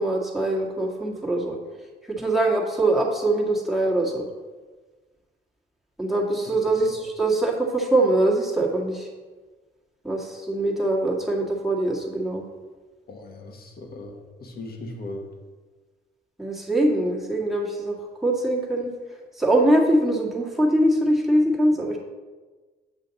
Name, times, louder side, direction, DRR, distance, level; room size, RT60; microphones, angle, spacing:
voice 1, 0.0-1.6 2.1-4.3 6.0-9.1 10.0-12.4 16.4-18.9 19.4-22.0, right 1 dB, ahead, -3 dB, 1.8 m, -23 dB
voice 2, 13.1-15.3, left 2 dB, 50° left, 2 dB, 1.5 m, -38 dB
8.4 x 5.7 x 4.0 m, 1.4 s
cardioid pair, 90°, 20 cm